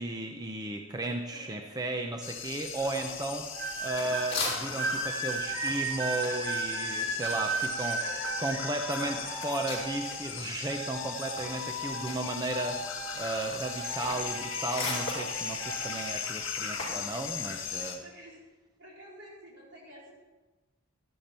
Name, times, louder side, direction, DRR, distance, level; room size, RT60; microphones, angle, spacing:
voice 1, 0.0-3.5 3.8-8.0 8.4-18.0, right 2 dB, 20° right, 3 dB, 0.7 m, -34 dB
voice 2, 1.3-2.0 8.0-8.5 17.7-18.4 18.8-20.1, equal, 60° right, -4 dB, 4.2 m, -49 dB
sound 1, 2.2-18.0, left 7 dB, 70° left, 1.7 m, -38 dB
sound 2, 3.0-5.0 5.3-10.5 10.8-17.1, left 3 dB, 30° left, 4.8 m, -40 dB
sound 3, 3.5-4.2 4.8-10.3 10.7-13.3 13.6-16.1 16.9-17.2, right 3 dB, 80° right, 3.3 m, -36 dB
12.0 x 12.0 x 4.4 m, 1.2 s
head